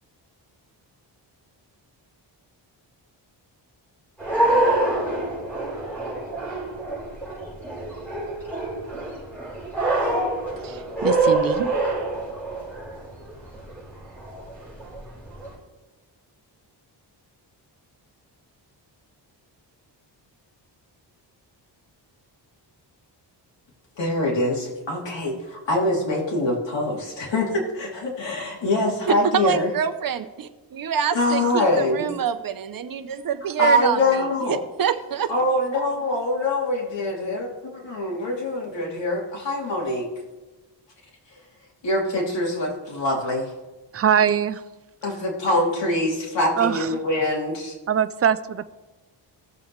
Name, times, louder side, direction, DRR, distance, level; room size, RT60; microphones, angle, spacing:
sound 1, 4.2-15.5, right 2 dB, 5° left, 4.1 m, -26 dB
voice 1, 10.6-11.7 29.1-35.3, right 8 dB, 50° right, 10 dB, 0.8 m, -26 dB
voice 2, 24.0-29.7 31.1-32.0 33.6-34.6 35.3-40.1 41.8-43.5 45.0-47.8, left 1 dB, 80° left, -2 dB, 2.9 m, -24 dB
voice 3, 43.9-44.6 46.6-46.9 47.9-48.7, right 8 dB, 35° right, 14 dB, 0.4 m, -21 dB
19.0 x 7.0 x 3.2 m, 1.2 s
wide cardioid pair, 115°, 43 cm